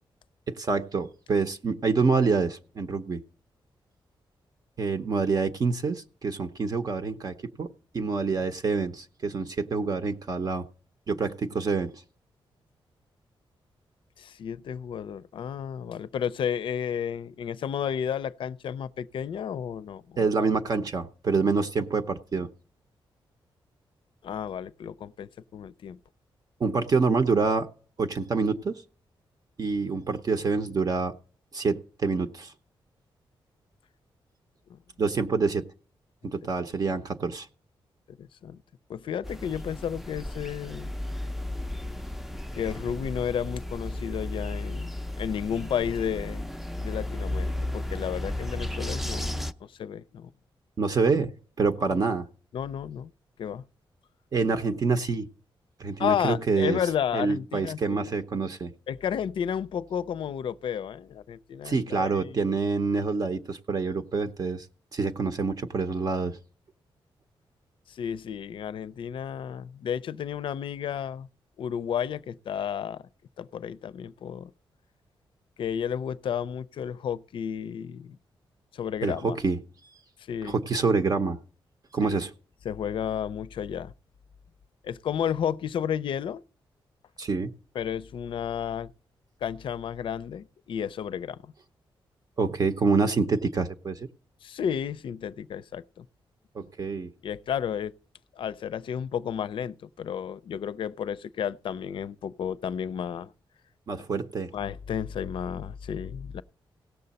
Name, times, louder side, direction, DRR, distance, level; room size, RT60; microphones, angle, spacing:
voice 1, 0.5-3.2 4.8-10.7 11.1-12.0 20.2-22.5 26.6-27.7 28.0-28.8 29.6-31.1 31.5-32.5 35.0-35.7 36.2-37.5 50.8-52.2 54.3-55.3 55.8-56.8 57.1-58.7 61.6-64.7 64.9-66.4 79.0-79.6 80.4-81.4 81.9-82.3 87.2-87.5 92.4-94.0 96.5-97.1 103.9-104.5, right 4 dB, 45° right, 0.7 m, -26 dB
voice 2, 14.2-20.3 24.2-26.0 34.7-34.8 38.1-38.6 38.9-40.9 42.5-46.5 46.8-50.3 51.8-52.0 52.5-53.1 53.4-53.6 56.0-58.1 58.9-62.4 67.9-71.3 71.6-73.0 73.4-74.5 75.6-78.2 78.7-79.4 80.2-80.6 82.0-82.2 82.6-83.9 84.8-86.4 87.7-88.9 89.4-91.5 94.4-96.1 97.2-97.9 98.4-103.3 104.5-106.4, left 8 dB, 65° left, 0.4 m, -32 dB
sound 1, 39.2-49.5, left 1 dB, 5° right, 0.5 m, -34 dB
17.0 x 6.7 x 4.1 m
wide cardioid pair, 130°, 9 cm